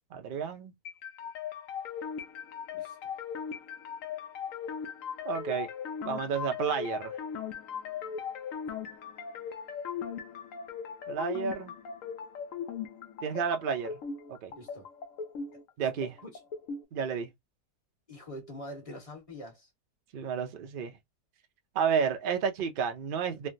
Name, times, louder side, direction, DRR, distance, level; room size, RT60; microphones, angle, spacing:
voice 1, 0.1-0.7 5.2-5.7 6.0-7.1 11.1-11.7 13.2-13.9 14.3-14.5 15.8-16.2 16.9-17.3 20.1-21.0 21.7-23.5, right 7 dB, 60° right, 0.5 m, -31 dB
sound 1, 0.8-16.8, left 7 dB, 65° left, 0.9 m, -39 dB
voice 2, 14.5-14.9 16.2-16.4 18.1-19.7, left 1 dB, 25° left, 1.3 m, -44 dB
3.2 x 2.2 x 2.6 m
omnidirectional pair, 1.6 m